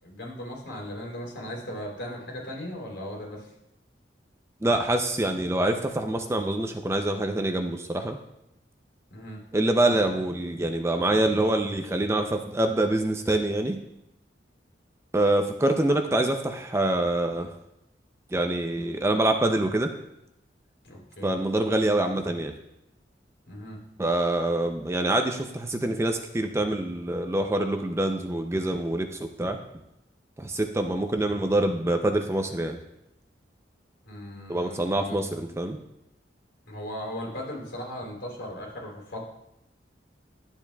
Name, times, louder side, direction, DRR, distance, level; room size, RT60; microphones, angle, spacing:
voice 1, 0.0-3.5 9.1-9.4 20.8-21.3 23.5-23.8 34.0-35.2 36.7-39.2, left 1 dB, 70° left, -2 dB, 3.2 m, -37 dB
voice 2, 4.6-8.2 9.5-13.8 15.1-17.6 18.3-19.9 21.2-22.5 24.0-29.6 30.4-32.8 34.5-35.8, right 1 dB, 15° right, 5 dB, 0.4 m, -25 dB
11.5 x 7.2 x 2.3 m, 0.84 s
head